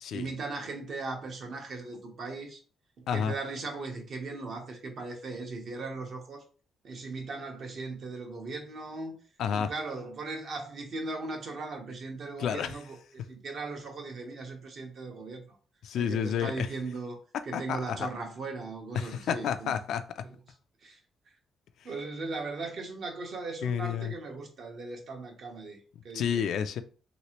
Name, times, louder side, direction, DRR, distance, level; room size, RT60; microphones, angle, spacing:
voice 1, 0.1-2.6 3.0-6.4 6.8-9.2 9.5-15.6 16.0-17.2 17.4-19.7 20.2-20.4 20.8-21.0 21.8-25.8 26.0-26.4, right 3 dB, 60° right, 1.0 m, -38 dB
voice 2, 9.4-9.7 12.4-12.7 15.8-16.7 17.5-18.1 18.9-20.2 23.6-24.1 26.1-26.8, left 8 dB, 75° left, 0.3 m, -30 dB
3.0 x 2.8 x 2.9 m
cardioid pair, 90°, 0 cm